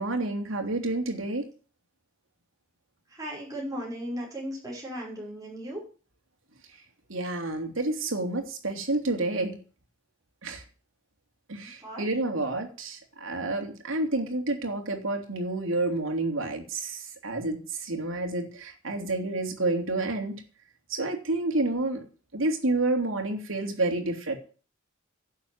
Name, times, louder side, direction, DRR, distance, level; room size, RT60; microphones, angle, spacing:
voice 1, 0.0-1.5 7.1-9.6 10.4-10.6 11.5-20.3 20.9-22.0 22.3-24.4, right 2 dB, 70° right, 4 dB, 3.1 m, -29 dB
voice 2, 3.1-5.8 11.8-12.0, equal, 15° right, -5 dB, 6.1 m, -36 dB
11.5 x 7.3 x 9.6 m, 0.37 s
head